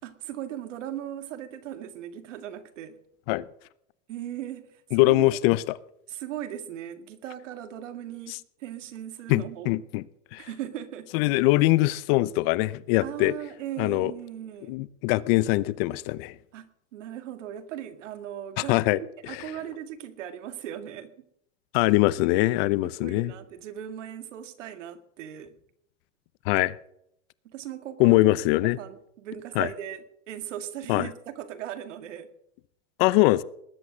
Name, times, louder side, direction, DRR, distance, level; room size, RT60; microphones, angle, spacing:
voice 1, 0.0-3.0 4.1-5.4 6.1-9.7 10.4-11.1 13.0-14.8 16.5-21.1 22.8-25.6 27.4-28.2 28.6-32.3, right 11 dB, 90° right, 2.0 m, -38 dB
voice 2, 4.9-5.8 8.3-8.4 9.3-10.0 10.3-10.5 11.1-13.3 13.8-14.1 14.7-16.4 18.6-19.5 21.7-23.3 26.4-26.8 28.0-28.8 29.6-29.7 30.9-31.1 33.0-33.4, left 19 dB, 55° left, 0.8 m, -22 dB
20.0 x 11.0 x 6.3 m
supercardioid pair, 135°, 36 cm